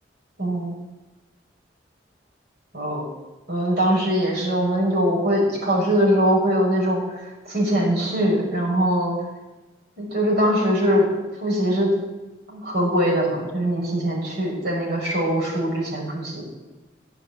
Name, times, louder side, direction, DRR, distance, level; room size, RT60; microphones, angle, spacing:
voice 1, 0.4-0.8 2.7-3.0 3.5-7.0 7.4-9.1 10.0-11.0 11.4-11.9 12.5-16.4, equal, 60° right, -4 dB, 5.9 m, -22 dB
15.5 x 8.1 x 8.4 m, 1.1 s
head